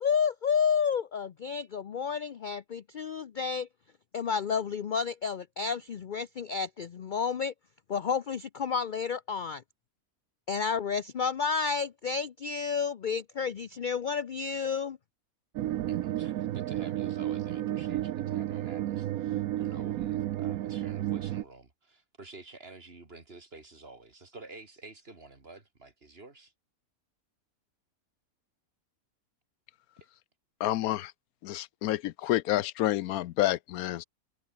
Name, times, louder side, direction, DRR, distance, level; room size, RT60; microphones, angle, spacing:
voice 1, 0.0-3.7 4.1-7.5 7.9-9.6 10.5-15.0, left 6 dB, 50° left, 0.6 m, -30 dB
sound 1, 15.6-21.4, right 13 dB, 75° right, 1.1 m, -32 dB
voice 2, 15.9-26.5 30.0-30.1, right 3 dB, 40° right, 3.0 m, -50 dB
voice 3, 30.6-31.1 31.4-34.0, left 14 dB, 80° left, 1.0 m, -29 dB
omnidirectional pair, 1.6 m